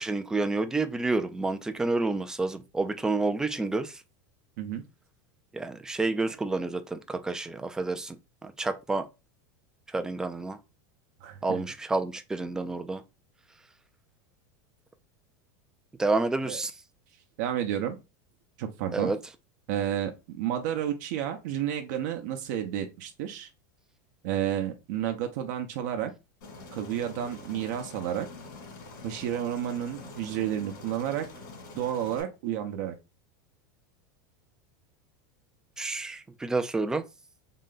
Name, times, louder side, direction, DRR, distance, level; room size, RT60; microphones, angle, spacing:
voice 1, 0.0-4.0 5.5-8.2 8.4-9.1 9.9-10.6 11.4-13.0 16.0-16.7 18.9-19.2 35.8-37.0, right 3 dB, 5° right, 0.3 m, -29 dB
voice 2, 11.2-11.6 16.4-16.6 17.4-18.0 18.6-19.1 19.7-23.5 24.2-26.1 26.7-28.3 29.0-31.2 31.7-32.9, right 10 dB, 60° right, 0.7 m, -31 dB
Aircraft, 26.4-32.2, left 3 dB, 80° left, 2.3 m, -45 dB
3.9 x 2.2 x 3.8 m
supercardioid pair, 155°, 10 cm